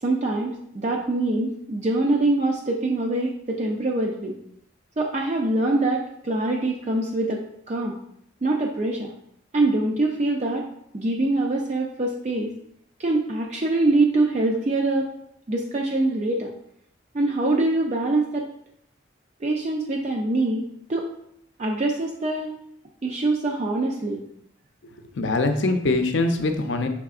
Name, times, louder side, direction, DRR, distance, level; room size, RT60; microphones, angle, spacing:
voice 1, 0.0-4.3 5.0-8.0 8.4-9.1 9.5-10.7 10.9-12.6 13.0-15.1 15.5-16.5 17.1-18.5 19.4-21.1 21.6-22.5 23.0-24.2, right 2 dB, 35° right, 0 dB, 0.4 m, -24 dB
voice 2, 24.8-26.9, left 2 dB, 70° left, 6 dB, 0.5 m, -23 dB
5.6 x 3.5 x 2.4 m, 0.73 s
head